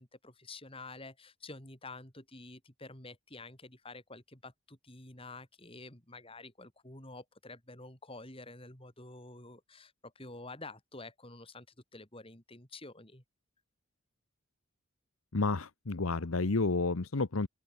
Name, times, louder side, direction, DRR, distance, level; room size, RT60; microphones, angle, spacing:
voice 1, 0.0-11.7 11.9-13.2, left 2 dB, 25° left, 5.0 m, -49 dB
voice 2, 15.3-17.5, left 3 dB, 80° left, 1.1 m, -30 dB
open air
head